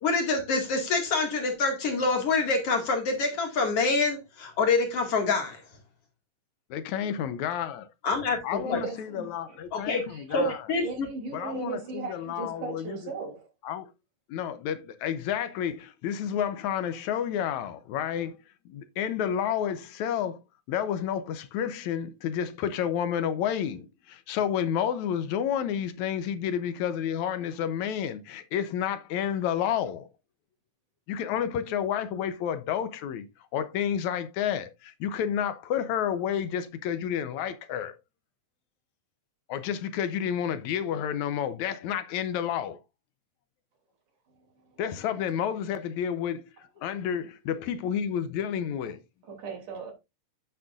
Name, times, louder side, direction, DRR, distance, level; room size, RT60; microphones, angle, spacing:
voice 1, 0.0-5.6 8.0-8.8 9.7-10.0 10.3-11.1, left 3 dB, 50° left, 3.1 m, -26 dB
voice 2, 6.7-7.9 8.4-10.7 11.3-13.0 13.6-13.9 14.3-18.4 18.7-20.4 20.7-30.1 31.1-33.3 33.5-38.0 39.5-42.8 44.8-46.5 46.8-49.0, left 9 dB, 80° left, 2.1 m, -30 dB
voice 3, 8.6-13.5 49.3-49.9, right 4 dB, 80° right, 4.6 m, -38 dB
10.5 x 8.7 x 2.5 m
omnidirectional pair, 3.4 m